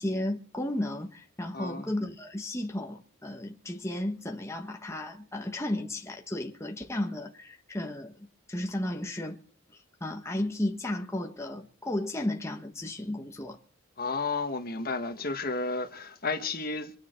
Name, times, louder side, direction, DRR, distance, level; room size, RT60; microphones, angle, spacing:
voice 1, 0.0-9.4 9.7-13.6, left 1 dB, 15° left, 1.3 m, -34 dB
voice 2, 1.5-1.9 14.0-16.9, left 3 dB, 45° left, 1.6 m, -32 dB
26.0 x 9.4 x 4.6 m
head